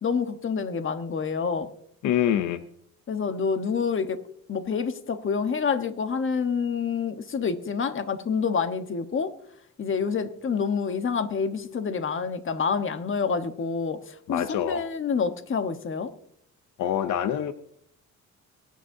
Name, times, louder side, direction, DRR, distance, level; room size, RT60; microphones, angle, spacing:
voice 1, 0.0-1.7 3.1-4.2 4.5-9.3 9.8-16.1, left 5 dB, 40° left, 1.2 m, -27 dB
voice 2, 2.0-2.6 14.3-14.9 16.8-17.5, left 10 dB, 75° left, 0.8 m, -25 dB
23.5 x 9.3 x 2.8 m
cardioid pair, 90°, 30 cm